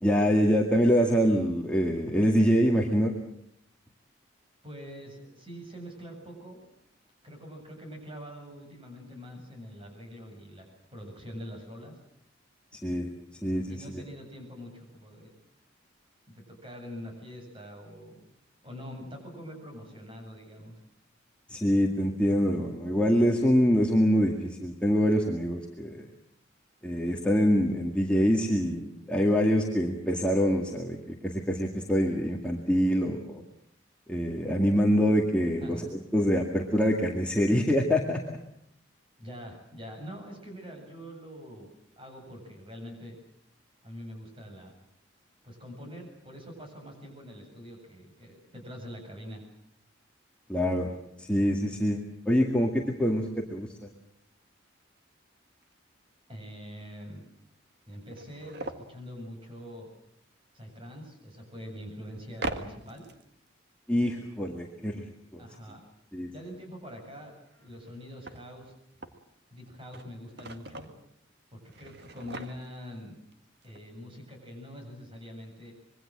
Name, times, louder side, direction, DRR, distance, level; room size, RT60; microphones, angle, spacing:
voice 1, 0.0-3.1 12.8-13.1 13.4-14.0 21.5-26.1 26.8-33.4 34.1-38.4 50.5-50.9 51.2-53.7 63.9-65.1 65.3-65.4 66.1-66.3, equal, 5° left, -1 dB, 2.1 m, -25 dB
voice 2, 4.6-6.7 7.2-11.9 13.7-15.4 16.3-18.2 18.6-20.8 35.6-35.9 39.2-41.7 42.0-43.1 43.8-44.7 45.4-49.4 56.3-57.2 57.9-59.9 60.5-63.1 65.4-65.8 66.3-67.3 67.6-68.7 69.5-70.9 71.5-73.2 73.6-75.7, equal, 25° right, 2 dB, 7.7 m, -44 dB
sound 1, 54.6-54.7 55.0-55.1 55.6-55.7 56.8-56.9 57.1-57.2 57.8-58.9 61.0-61.1 62.3-63.5 67.4-69.3 69.7-71.0 71.6-73.0 73.3-73.4 73.6-73.8, right 2 dB, 55° right, 1.8 m, -41 dB
25.5 x 22.5 x 7.7 m, 0.71 s
head